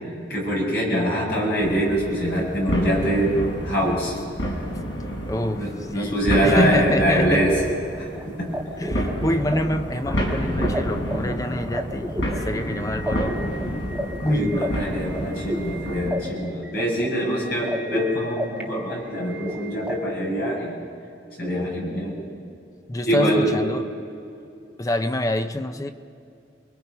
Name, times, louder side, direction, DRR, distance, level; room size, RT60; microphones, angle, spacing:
voice 1, 0.3-3.4 3.6-4.2 5.6-7.6 8.0-8.1 8.4-8.5 14.3-20.8 21.4-22.2 23.1-23.5, equal, 55° left, -3 dB, 6.9 m, -24 dB
sound 1, 1.6-16.1, equal, 80° left, 5.2 m, -29 dB
voice 2, 5.3-7.5 8.8-13.5 14.2-14.8 22.9-23.8 24.8-25.9, left 1 dB, 20° left, 8 dB, 0.6 m, -26 dB
sound 2, 7.1-19.9, equal, 5° right, 1.8 m, -33 dB
28.5 x 22.0 x 5.5 m, 2.6 s
head